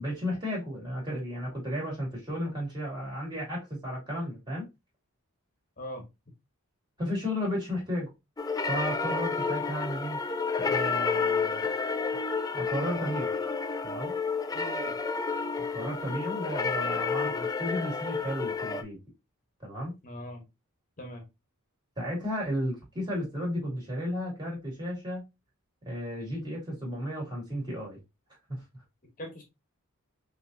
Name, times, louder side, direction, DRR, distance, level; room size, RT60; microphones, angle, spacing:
voice 1, 0.0-4.7 7.0-8.1 8.7-10.2 10.6-11.7 12.5-13.3 13.8-14.1 15.7-19.0 19.6-19.9 22.0-25.3 25.8-28.0 28.5-28.6, equal, 20° right, 2.3 m, -33 dB
sound 1, 8.4-18.8, left 4 dB, 15° left, 0.3 m, -30 dB
voice 2, 14.5-15.0 20.0-20.4 21.0-21.2 29.2-29.4, left 1 dB, 40° left, 1.1 m, -41 dB
5.4 x 2.9 x 2.6 m
head